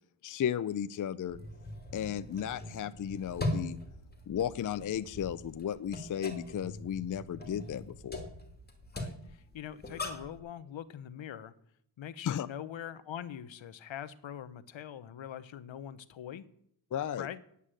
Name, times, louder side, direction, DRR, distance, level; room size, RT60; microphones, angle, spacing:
voice 1, 0.2-1.4 1.9-3.8 4.3-8.3 12.2-12.5 16.9-17.3, left 9 dB, 40° left, 13 dB, 0.4 m, -34 dB
sound 1, 1.3-10.4, left 1 dB, 20° left, 2.3 m, -41 dB
voice 2, 8.9-11.5 12.0-16.5 17.2-17.4, left 9 dB, 65° left, 14 dB, 0.9 m, -43 dB
9.8 x 8.4 x 7.6 m, 0.70 s
wide cardioid pair, 110°, 49 cm